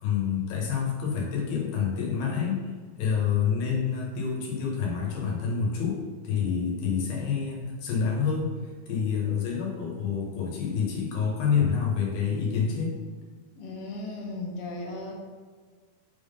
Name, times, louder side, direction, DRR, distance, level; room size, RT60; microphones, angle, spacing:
voice 1, 0.0-2.7 3.0-8.5 8.9-13.0, left 6 dB, 85° left, -2 dB, 3.1 m, -28 dB
voice 2, 13.6-15.1, left 2 dB, 65° left, -1 dB, 1.4 m, -36 dB
6.1 x 3.8 x 5.2 m, 1.5 s
omnidirectional pair, 4.1 m